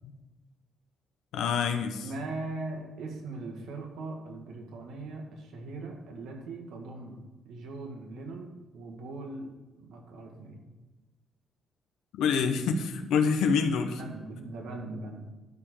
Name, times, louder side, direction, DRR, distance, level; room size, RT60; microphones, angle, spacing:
voice 1, 1.3-2.0 12.1-14.0, left 6 dB, 85° left, 6 dB, 1.0 m, -26 dB
voice 2, 2.0-9.5 9.8-10.6 13.7-15.3, right 2 dB, 80° right, 2 dB, 1.9 m, -40 dB
12.0 x 5.2 x 6.7 m, 1.2 s
cardioid pair, 90°, 0 cm